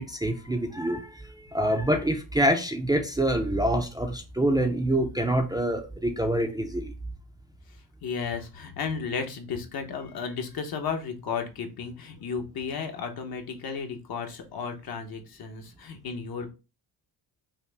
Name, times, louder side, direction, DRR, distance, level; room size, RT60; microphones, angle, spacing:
voice 1, 0.0-6.9, right 1 dB, 10° right, 0.5 m, -26 dB
voice 2, 8.0-16.5, left 5 dB, 55° left, 0.9 m, -34 dB
5.6 x 2.1 x 3.3 m
cardioid pair, 125°, 42 cm